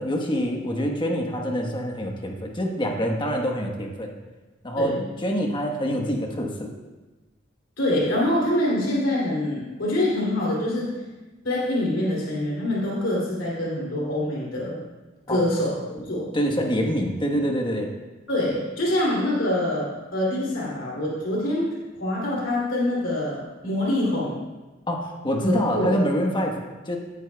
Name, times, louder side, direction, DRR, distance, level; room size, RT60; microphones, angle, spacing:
voice 1, 0.0-4.1 4.6-6.7 15.3-15.4 16.3-17.9 24.9-27.0, equal, 25° left, 2 dB, 1.2 m, -26 dB
voice 2, 7.8-10.9 11.4-14.8 15.3-15.8 16.1-16.3 18.3-21.7 22.0-24.4 25.7-25.9, left 1 dB, 70° left, -6 dB, 3.0 m, -25 dB
17.0 x 8.9 x 2.3 m, 1.2 s
head